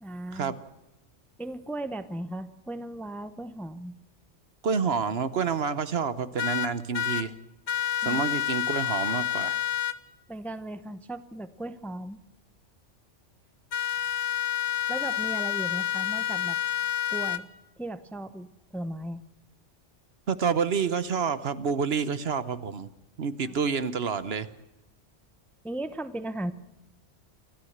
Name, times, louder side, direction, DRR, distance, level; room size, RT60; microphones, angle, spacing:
voice 1, 0.0-0.5 1.4-4.0 8.0-8.2 10.3-12.2 14.9-16.6 17.1-17.5 17.8-19.2 23.5-23.6 25.6-26.5, right 1 dB, ahead, 11 dB, 0.7 m, -36 dB
voice 2, 4.6-7.3 8.0-9.6 20.3-22.9 23.2-24.5, right 6 dB, 60° right, 13 dB, 1.1 m, -28 dB
sound 1, 6.4-7.2 7.7-9.9 13.7-17.4, left 10 dB, 75° left, 1.2 m, -29 dB
28.0 x 13.0 x 8.0 m, 0.91 s
omnidirectional pair, 1.2 m